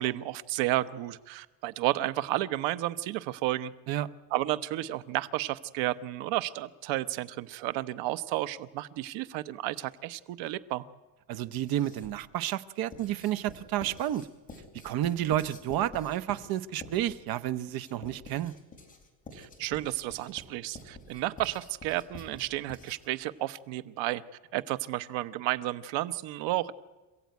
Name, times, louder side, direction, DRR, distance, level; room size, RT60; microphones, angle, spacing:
voice 1, 0.0-3.7 4.3-10.9 19.3-24.2 24.5-26.7, right 15 dB, 85° right, 12 dB, 1.1 m, -32 dB
voice 2, 11.3-14.3 14.8-18.5, right 12 dB, 55° right, 14 dB, 0.9 m, -30 dB
Writing, 11.5-12.3 12.9-23.2, left 2 dB, 20° left, 4.0 m, -49 dB
27.0 x 15.5 x 9.5 m, 1.2 s
cardioid pair, 150°, 44 cm